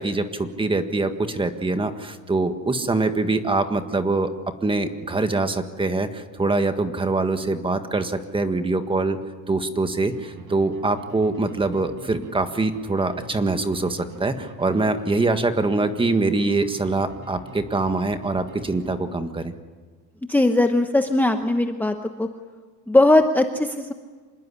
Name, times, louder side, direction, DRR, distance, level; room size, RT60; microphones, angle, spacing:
voice 1, 0.0-4.3 4.6-9.2 9.5-19.5, right 3 dB, 15° right, 8 dB, 1.6 m, -24 dB
sound 1, 10.1-19.4, right 5 dB, 70° right, 5.0 m, -45 dB
voice 2, 20.3-22.3 22.9-23.9, left 2 dB, 5° left, 5 dB, 1.0 m, -19 dB
26.5 x 19.5 x 9.9 m, 1.4 s
cardioid pair, 145°, 32 cm